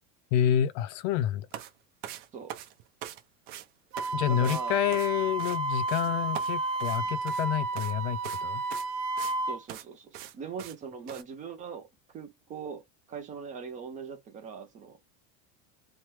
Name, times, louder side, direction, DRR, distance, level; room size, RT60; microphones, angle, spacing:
voice 1, 0.3-1.5 4.1-8.6, left 11 dB, 65° left, 0.5 m, -28 dB
sound 1, 1.5-1.7 2.0-3.2 3.5-3.7 4.0-4.1 4.4-4.6 4.9-5.6 5.9-6.1 6.3-7.5 7.8-7.9 8.2-8.4 8.7-9.4 9.7-9.8 10.1-10.3 10.6-10.8 11.1-11.2, right 11 dB, 50° right, 0.7 m, -41 dB
Wind instrument woodwind instrument, 3.9-9.6, right 3 dB, 75° right, 1.1 m, -31 dB
voice 2, 4.3-4.8 9.5-15.0, right 6 dB, 20° right, 0.4 m, -41 dB
3.2 x 2.1 x 3.0 m
cardioid pair, 165°, 39 cm